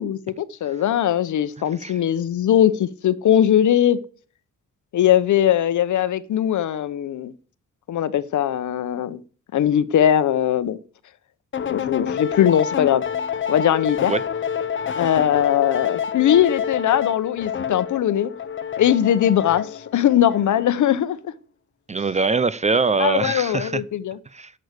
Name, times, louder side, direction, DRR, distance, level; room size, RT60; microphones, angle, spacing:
voice 1, 0.0-4.0 4.9-7.3 7.9-9.2 9.5-10.8 11.7-13.0 13.5-14.1 14.9-18.3 18.8-21.3 23.0-24.2, left 10 dB, 70° left, 0.9 m, -20 dB
sound 1, 11.5-20.9, left 7 dB, 40° left, 0.8 m, -28 dB
voice 2, 21.9-23.8 24.3-24.5, right 4 dB, 25° right, 0.5 m, -23 dB
11.0 x 6.5 x 8.2 m
cardioid pair, 135°, 31 cm